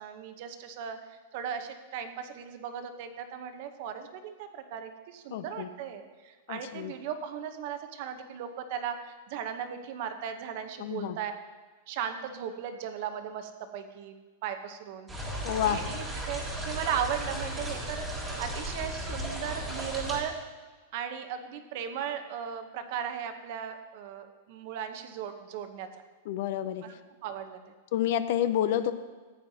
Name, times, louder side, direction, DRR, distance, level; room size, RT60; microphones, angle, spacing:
voice 1, 0.0-11.3 11.9-14.1 14.4-15.1 15.6-20.3 20.9-25.9 26.8-26.9 27.2-27.6, right 8 dB, 40° right, 8 dB, 0.8 m, -37 dB
voice 2, 5.3-5.7 6.5-6.9 10.8-11.2 15.4-15.8 26.3-26.8 27.9-28.9, left 11 dB, 45° left, 12 dB, 0.5 m, -29 dB
sound 1, 15.1-20.2, right 1 dB, 5° right, 1.6 m, -35 dB
14.5 x 9.4 x 2.8 m, 1.4 s
supercardioid pair, 175°, 0 cm